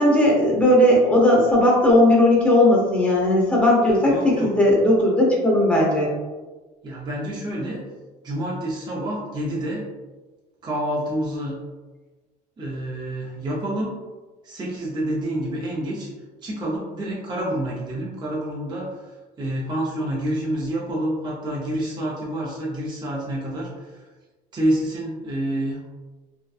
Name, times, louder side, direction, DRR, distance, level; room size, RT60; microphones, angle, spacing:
voice 1, 0.0-6.1, left 1 dB, 5° left, -4 dB, 0.8 m, -17 dB
voice 2, 4.1-4.5 6.8-7.8 8.2-9.9 10.6-11.6 12.6-13.9 14.4-16.1 16.4-24.0 24.5-25.8, right 1 dB, 25° right, -6 dB, 0.6 m, -28 dB
2.6 x 2.1 x 2.3 m, 1.2 s
cardioid pair, 110°, 17 cm